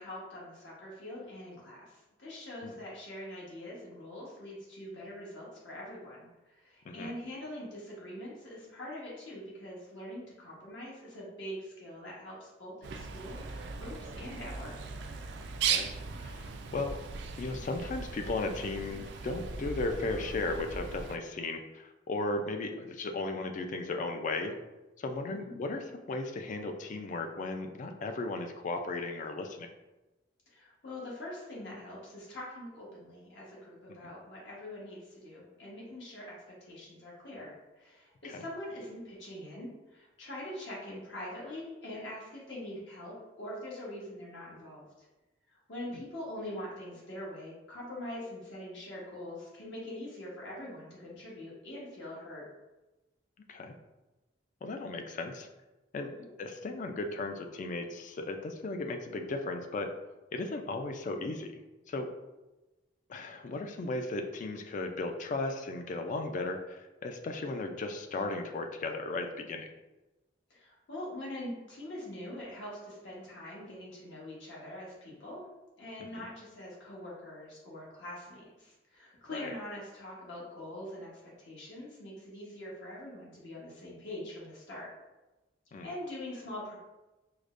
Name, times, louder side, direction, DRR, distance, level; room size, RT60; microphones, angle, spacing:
voice 1, 0.0-14.8 25.3-25.5 30.5-45.1 45.5-52.5 56.1-56.3 70.5-75.5 75.8-84.9 85.8-86.8, left 1 dB, 70° left, -5 dB, 1.1 m, -43 dB
Bird, 12.8-21.2, right 5 dB, 65° right, 0.3 m, -38 dB
voice 2, 16.2-16.9 17.4-24.6 25.0-25.8 26.1-29.7 38.2-38.4 53.5-53.7 54.6-55.5 55.9-56.1 56.4-59.9 60.3-61.6 61.9-62.1 63.1-69.7 76.2-76.3 79.3-79.5 85.7-85.9, left 2 dB, 45° left, 5 dB, 0.3 m, -36 dB
4.7 x 2.1 x 2.5 m, 1.1 s
head